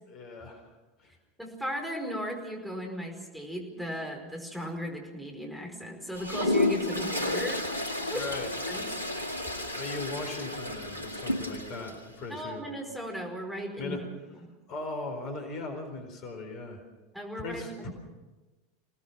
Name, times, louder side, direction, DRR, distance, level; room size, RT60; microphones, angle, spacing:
voice 1, 0.1-0.6 1.0-1.1 8.1-8.5 9.8-12.7 13.8-14.0 14.7-16.8 17.4-17.9, left 3 dB, 40° left, 5 dB, 4.3 m, -38 dB
voice 2, 1.4-8.3 8.7-8.9 12.3-14.0 14.4-14.5 17.1-17.9, equal, ahead, 0 dB, 4.9 m, -36 dB
Toilet flush, 6.1-12.0, left 2 dB, 90° right, 1.9 m, -31 dB
26.0 x 18.5 x 6.1 m, 1.2 s
figure-of-eight pair, 80°, 0 cm